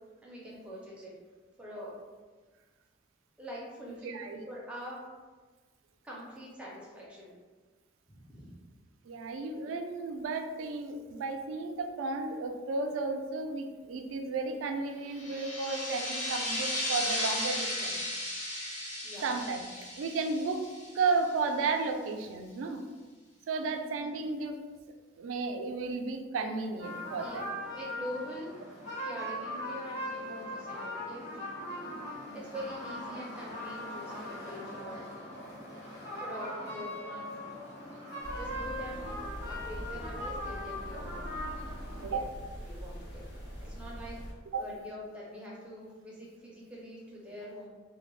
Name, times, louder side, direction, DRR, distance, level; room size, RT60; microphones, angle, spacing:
voice 1, 0.2-1.2 1.6-2.0 3.4-4.2 4.5-5.1 6.0-7.3 8.1-8.6 19.0-19.3 23.6-23.8 27.2-27.4 27.7-31.3 32.3-35.1 36.2-37.3 38.1-39.1 39.5-41.3 41.9-42.2 42.6-44.2 44.6-47.7, equal, 5° right, -5 dB, 0.4 m, -44 dB
voice 2, 4.0-4.4 9.1-18.0 19.2-19.6 20.0-20.7 20.9-22.8 23.5-24.6 25.2-27.4 32.3-32.4 42.0-42.3 44.5-44.6, right 4 dB, 90° right, 6 dB, 0.3 m, -33 dB
sound 1, 15.1-21.4, left 1 dB, 40° left, 1.2 m, -35 dB
sound 2, 26.8-42.1, left 1 dB, 85° left, 1.2 m, -40 dB
sound 3, 38.2-44.3, equal, 60° left, 0.6 m, -43 dB
2.2 x 2.1 x 3.0 m, 1.4 s
head